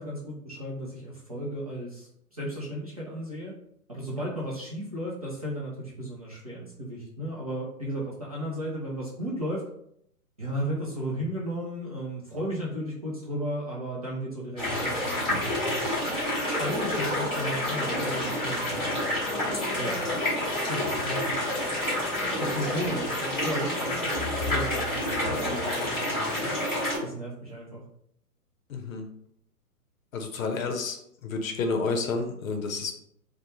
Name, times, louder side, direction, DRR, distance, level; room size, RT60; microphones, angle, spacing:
voice 1, 0.0-3.5 3.9-9.6 10.4-15.3 16.6-18.6 19.8-20.0 20.5-21.7 22.4-26.1 27.0-27.8, equal, 25° right, -7 dB, 0.3 m, -34 dB
sound 1, 14.6-27.0, left 1 dB, 10° left, 0.9 m, -28 dB
voice 2, 28.7-29.0 30.1-32.9, left 4 dB, 60° left, 4 dB, 0.7 m, -30 dB
2.5 x 2.1 x 3.0 m, 0.72 s
figure-of-eight pair, 125°, 47 cm